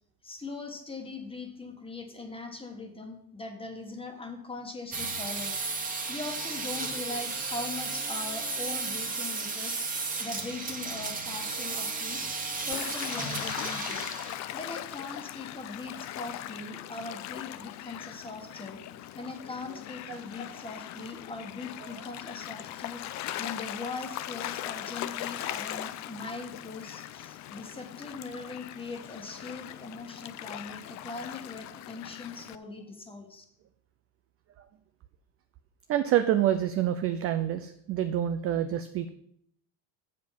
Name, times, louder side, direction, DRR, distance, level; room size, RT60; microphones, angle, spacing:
voice 1, 0.2-12.2 12.7-14.1 14.5-18.8 19.1-23.0 23.4-33.4, left 3 dB, 10° left, 4 dB, 1.4 m, -41 dB
sound 1, 4.9-14.3, right 4 dB, 15° right, 1.5 m, -34 dB
Gull seagull / Waves surf, 12.7-32.6, left 13 dB, 40° left, 0.4 m, -40 dB
voice 2, 35.9-39.1, right 11 dB, 30° right, 9 dB, 0.3 m, -27 dB
7.5 x 7.4 x 5.7 m, 0.70 s
cardioid pair, 130°, 50 cm